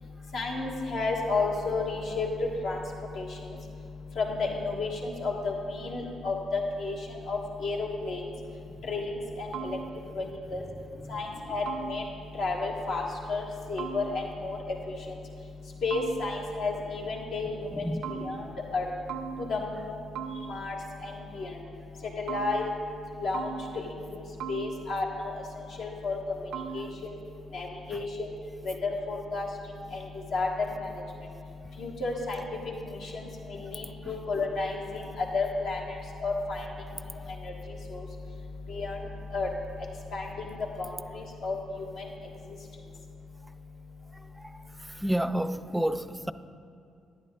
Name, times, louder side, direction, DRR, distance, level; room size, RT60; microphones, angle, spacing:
voice 1, 0.3-2.3 2.6-2.8 3.1-3.3 4.2-6.9 7.3-8.2 8.9-9.0 9.4-9.8 10.2-10.3 10.5-10.6 11.1-12.0 12.4-13.0 13.3-13.4 13.7-14.6 15.8-17.8 18.2-18.4 18.7-18.8 19.5-19.8 20.5-20.7 21.0-21.5 22.2-22.7 23.2-23.5 24.1-24.2 24.5-25.3 25.8-26.2 26.7-26.9 27.5-28.1 28.6-28.7 29.1-29.5 29.9-30.0 30.3-30.5 30.8-30.9 31.8-32.4 33.7-35.0 35.3-36.0 36.2-36.6 37.9-38.0 38.7-39.0 39.3-39.5 40.1-40.3 40.8-40.9 41.1-41.6 42.0-42.1, left 3 dB, 70° left, -1 dB, 1.4 m, -31 dB
sound 1, 9.5-10.3 11.7-12.4 13.8-14.6 15.9-16.7 18.0-18.8 19.1-19.9 20.1-20.9 22.3-23.1 23.3-24.1 24.4-25.2 26.5-27.1, right 7 dB, 80° right, 0.4 m, -40 dB
voice 2, 45.0-46.3, right 1 dB, 10° right, 12 dB, 0.3 m, -29 dB
10.5 x 9.3 x 3.6 m, 2.4 s
supercardioid pair, 55°, 0 cm